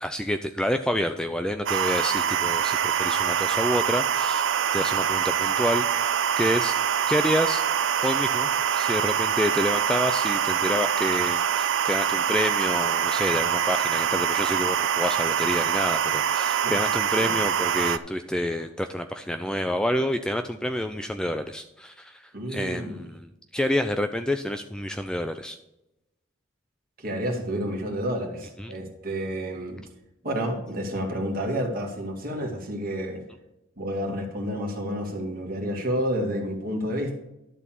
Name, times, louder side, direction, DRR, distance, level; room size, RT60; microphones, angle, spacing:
voice 1, 0.0-5.9 6.4-6.7 7.1-7.6 8.0-23.3 23.5-25.6 28.6-28.7, left 1 dB, 5° left, 7 dB, 0.3 m, -28 dB
sound 1, 1.7-18.0, right 8 dB, 60° right, 0.4 m, -24 dB
voice 2, 22.3-23.0 27.0-29.8 30.2-33.2 33.8-37.2, equal, 45° right, 0 dB, 2.1 m, -30 dB
12.0 x 4.1 x 7.4 m, 0.91 s
head